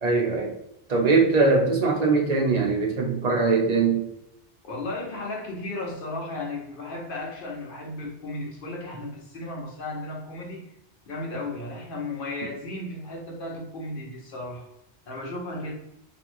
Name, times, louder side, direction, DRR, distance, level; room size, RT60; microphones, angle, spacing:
voice 1, 0.0-0.5 0.9-4.0, right 4 dB, 45° right, -1 dB, 0.7 m, -21 dB
voice 2, 4.6-10.7 11.1-14.7 15.1-15.7, left 2 dB, 60° left, -2 dB, 0.9 m, -34 dB
3.1 x 2.6 x 2.5 m, 0.85 s
omnidirectional pair, 1.1 m